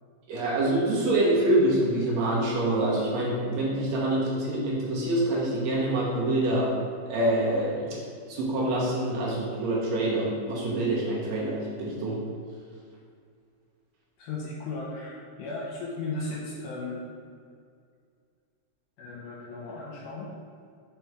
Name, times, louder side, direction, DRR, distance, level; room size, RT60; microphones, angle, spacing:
voice 1, 0.3-6.7 7.1-7.9 8.3-12.2, right 1 dB, 75° right, -6 dB, 1.6 m, -26 dB
voice 2, 14.2-17.0 19.0-20.3, left 3 dB, 75° left, -4 dB, 2.0 m, -36 dB
6.0 x 3.9 x 4.7 m, 2.2 s
omnidirectional pair, 4.8 m